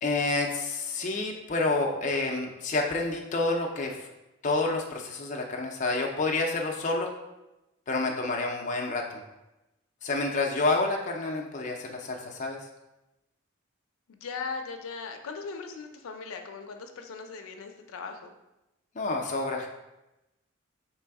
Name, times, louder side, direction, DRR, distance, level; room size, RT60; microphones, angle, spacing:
voice 1, 0.0-4.1 4.4-7.1 7.9-9.2 10.0-12.7 19.0-19.7, left 3 dB, 35° left, 1 dB, 0.5 m, -29 dB
voice 2, 14.1-18.3, left 5 dB, 90° left, 5 dB, 0.5 m, -39 dB
3.4 x 3.1 x 4.6 m, 0.95 s
head